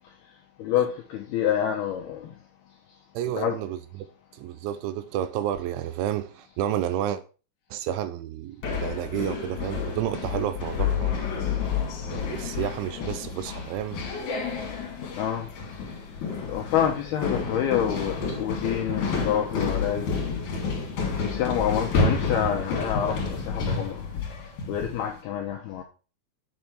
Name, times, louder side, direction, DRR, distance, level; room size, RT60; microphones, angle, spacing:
voice 1, 0.6-2.3 3.4-3.6 15.1-15.5 16.5-20.1 21.2-24.2 24.7-25.8, left 9 dB, 80° left, 2.3 m, -27 dB
voice 2, 3.1-3.8 4.3-7.2 7.7-11.6 12.0-14.0, right 11 dB, 80° right, 3.0 m, -31 dB
sound 1, 8.6-25.1, left 5 dB, 50° left, 2.9 m, -30 dB
8.1 x 7.2 x 4.6 m
omnidirectional pair, 5.7 m